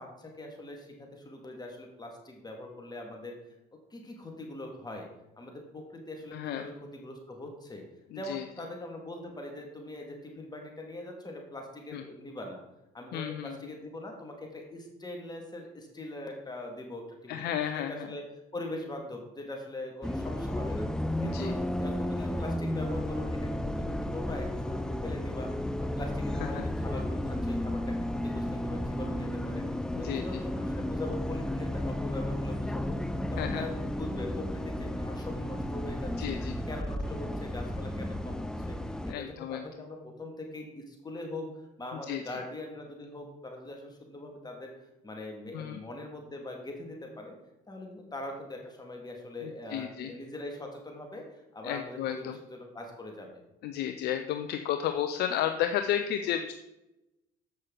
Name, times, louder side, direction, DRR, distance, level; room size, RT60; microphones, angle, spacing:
voice 1, 0.0-3.4 3.9-5.1 5.4-7.8 8.1-12.6 12.9-18.2 18.5-20.9 21.2-29.7 30.0-36.4 36.7-38.8 39.1-41.5 41.8-44.7 45.0-47.4 47.7-53.4, left 1 dB, 20° left, 1 dB, 2.0 m, -42 dB
voice 2, 6.3-6.6 8.1-8.4 11.9-12.0 13.1-13.5 17.3-18.1 21.2-21.5 26.5-26.6 29.9-30.2 33.4-33.6 36.2-36.5 39.1-39.6 42.1-42.2 45.5-45.8 49.4-50.1 51.6-52.4 53.6-56.5, left 10 dB, 65° left, 8 dB, 0.5 m, -32 dB
Bus, 20.0-39.1, left 1 dB, 5° left, 0.5 m, -33 dB
8.0 x 6.3 x 3.8 m, 0.94 s
hypercardioid pair, 65°, 18 cm